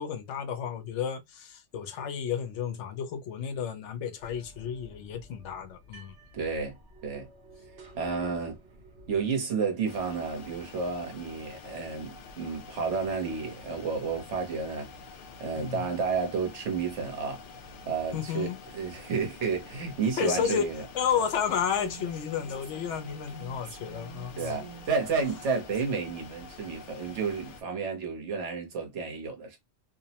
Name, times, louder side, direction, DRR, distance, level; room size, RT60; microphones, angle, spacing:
voice 1, 0.0-6.1 15.5-15.8 18.1-18.6 20.2-20.7 20.9-24.6, left 8 dB, 85° left, 0.9 m, -32 dB
sound 1, 4.2-9.3, right 1 dB, 70° right, 1.1 m, -52 dB
voice 2, 6.3-7.3 8.0-8.6 9.1-14.9 15.4-17.4 17.9-20.8 24.4-29.6, right 5 dB, 90° right, 1.2 m, -31 dB
sound 2, 9.9-27.6, left 4 dB, 60° left, 0.6 m, -47 dB
Female speech woman speaking, 21.7-25.8, right 7 dB, 40° right, 0.5 m, -48 dB
2.8 x 2.0 x 2.7 m
omnidirectional pair, 1.2 m